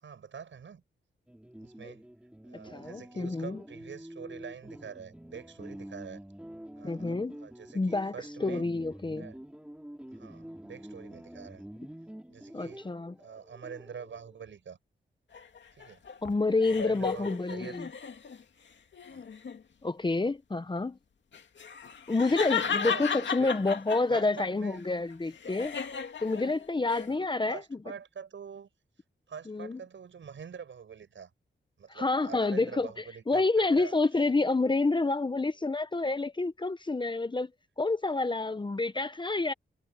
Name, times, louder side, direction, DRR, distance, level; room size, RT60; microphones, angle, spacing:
voice 1, 0.0-0.8 1.6-2.0 2.4-6.2 6.8-8.7 9.2-9.4 10.1-11.6 12.3-12.9 13.2-14.8 15.7-16.0 16.7-17.8 19.1-19.3 22.6-23.1 23.4-23.5 24.1-24.8 27.1-28.7 29.3-31.3 31.8-33.9, right 7 dB, 70° right, 7.4 m, -45 dB
sound 1, 1.3-14.6, right 1 dB, 5° right, 3.6 m, -47 dB
voice 2, 2.7-3.6 6.8-7.4 7.7-8.1 8.4-9.3 12.5-13.1 16.2-17.9 19.8-21.0 22.1-25.7 26.2-27.6 29.5-29.8 31.9-37.5 37.8-39.5, left 3 dB, 25° left, 0.9 m, -28 dB
sound 2, 15.3-18.4 18.9-19.6 21.3-24.4 24.8-27.1, left 6 dB, 65° left, 2.3 m, -35 dB
wide cardioid pair, 90°, 20 cm